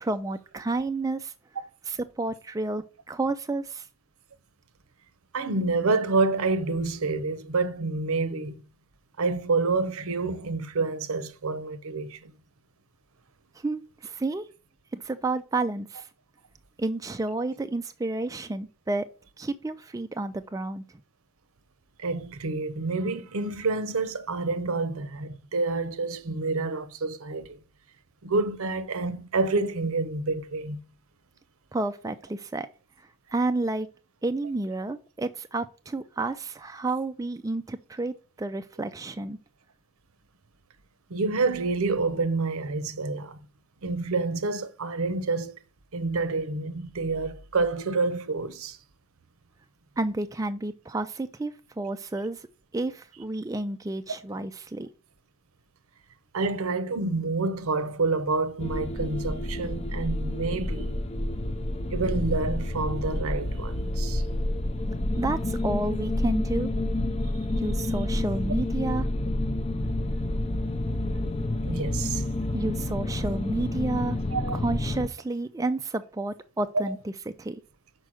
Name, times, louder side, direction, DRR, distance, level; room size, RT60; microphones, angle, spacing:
voice 1, 0.0-1.3 1.9-3.9 13.6-14.5 14.9-16.1 16.8-19.1 19.4-20.8 31.7-32.7 33.3-33.9 34.2-39.4 50.0-52.5 52.7-54.9 65.2-66.7 67.6-69.1 72.5-74.2 74.5-77.6, right 2 dB, 15° right, 0.3 m, -30 dB
voice 2, 5.3-8.6 9.2-12.3 22.0-27.6 28.2-30.8 41.1-43.4 43.8-45.5 45.9-48.8 56.3-60.9 61.9-64.2 71.6-72.2 74.3-74.6 76.9-77.0, right 3 dB, 85° right, 0.8 m, -28 dB
sound 1, 58.6-75.1, left 1 dB, 30° left, 0.5 m, -29 dB
6.2 x 4.5 x 6.3 m
head